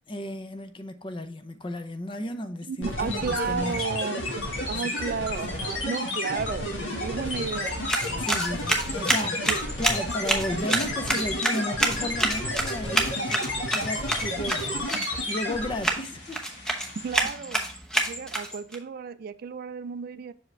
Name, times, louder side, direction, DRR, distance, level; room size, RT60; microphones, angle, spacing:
voice 1, 0.1-3.9 4.8-4.9 5.5-5.6 7.4-7.6 8.2-9.5 9.8-13.5 13.7-16.4 17.2-17.3, left 1 dB, 25° left, 0.5 m, -34 dB
voice 2, 2.7-4.2 4.7-6.7 7.0-8.3 9.5-9.6 17.0-17.6 18.0-20.3, right 6 dB, 50° right, 0.3 m, -33 dB
sound 1, 2.8-16.0, left 1 dB, 80° left, 1.6 m, -31 dB
sound 2, 3.5-17.2, left 2 dB, 65° left, 1.6 m, -48 dB
sound 3, 7.6-18.8, right 1 dB, 5° left, 0.8 m, -29 dB
6.5 x 4.9 x 3.2 m
head